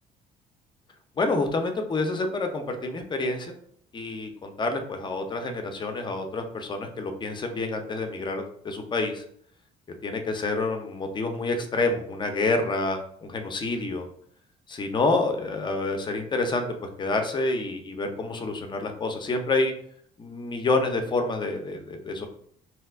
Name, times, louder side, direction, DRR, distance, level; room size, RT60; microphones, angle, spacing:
voice 1, 1.2-3.6 3.9-9.2 10.0-14.1 14.7-16.7 17.0-19.7 20.2-22.3, left 3 dB, 25° left, 5 dB, 0.5 m, -28 dB
2.8 x 2.3 x 3.4 m, 0.63 s
cardioid pair, 110°, 17 cm